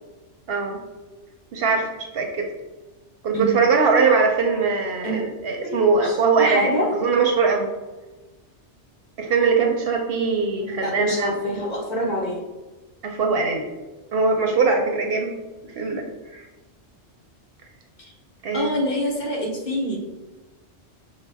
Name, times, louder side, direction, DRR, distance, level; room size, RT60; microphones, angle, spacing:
voice 1, 0.5-0.8 1.5-2.5 3.2-7.7 9.2-11.5 13.0-13.7 14.1-15.4 15.8-16.0 16.3-16.5 18.4-18.8, right 4 dB, 65° right, 3 dB, 0.7 m, -21 dB
voice 2, 5.6-6.9 10.6-12.4 18.0-18.1 18.5-20.0, equal, 45° left, -2 dB, 0.8 m, -26 dB
6.2 x 2.1 x 3.3 m, 1.1 s
omnidirectional pair, 1.2 m